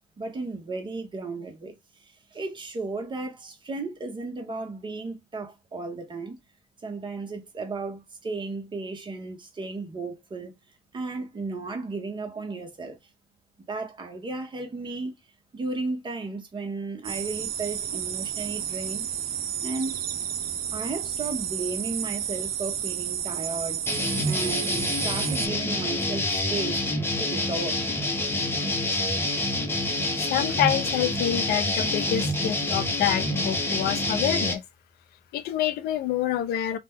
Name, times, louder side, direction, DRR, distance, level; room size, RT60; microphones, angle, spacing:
voice 1, 0.2-6.4 6.8-10.5 10.9-13.0 13.7-15.1 15.5-19.0 19.6-20.0 20.7-23.8 24.2-26.8 27.2-27.8, right 3 dB, 30° right, 1.0 m, -34 dB
sound 1, 17.0-25.5, right 9 dB, 65° right, 0.6 m, -31 dB
sound 2, 23.9-34.5, left 1 dB, 15° left, 0.8 m, -27 dB
voice 2, 30.2-34.6 35.3-36.8, left 11 dB, 70° left, 0.5 m, -27 dB
2.9 x 2.2 x 3.5 m
cardioid pair, 110°, 17 cm